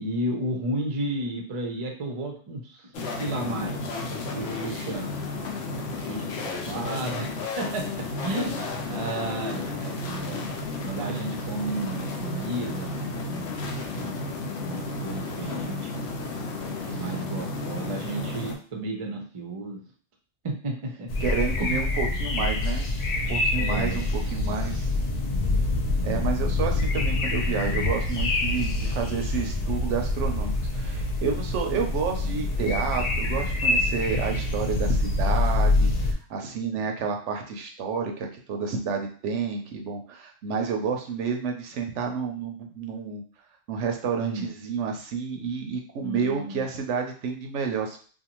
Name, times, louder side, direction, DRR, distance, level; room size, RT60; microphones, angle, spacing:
voice 1, 0.0-3.8 4.3-5.1 5.9-6.3 6.7-10.5 10.8-13.5 13.9-14.3 14.6-15.9 17.0-19.8 20.4-21.1 21.6-21.8 23.6-24.1 44.2-44.5 46.0-46.6, right 1 dB, 40° right, 1 dB, 0.4 m, -33 dB
sound 1, 2.9-18.6, left 3 dB, 75° left, 0.8 m, -33 dB
sound 2, 21.1-36.1, left 2 dB, 60° left, 0.4 m, -26 dB
voice 2, 21.2-22.9 23.3-24.0 24.3-24.9 26.0-43.2 43.7-48.0, right 5 dB, 85° right, 3 dB, 0.9 m, -30 dB
2.6 x 2.2 x 2.9 m, 0.43 s
omnidirectional pair, 1.2 m